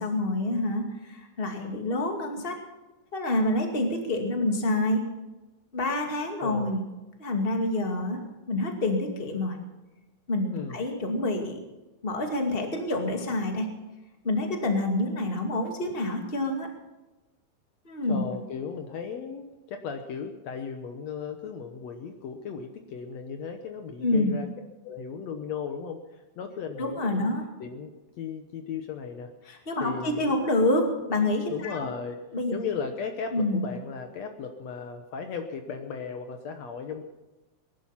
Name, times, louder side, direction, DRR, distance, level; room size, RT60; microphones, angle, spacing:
voice 1, 0.0-2.6 3.1-5.0 5.7-6.8 7.2-8.2 8.5-9.6 10.3-11.6 12.0-13.7 14.2-16.7 17.9-18.2 24.0-24.3 26.8-27.4 29.5-31.8 32.3-32.6 33.3-33.6, left 1 dB, 20° left, 3 dB, 2.2 m, -27 dB
voice 2, 6.4-6.8 10.5-10.8 18.1-24.5 24.8-27.3 27.6-29.3 29.8-30.3 31.5-32.2 32.5-37.0, left 6 dB, 65° left, 5 dB, 2.1 m, -36 dB
21.0 x 11.5 x 5.8 m, 1.1 s
omnidirectional pair, 3.4 m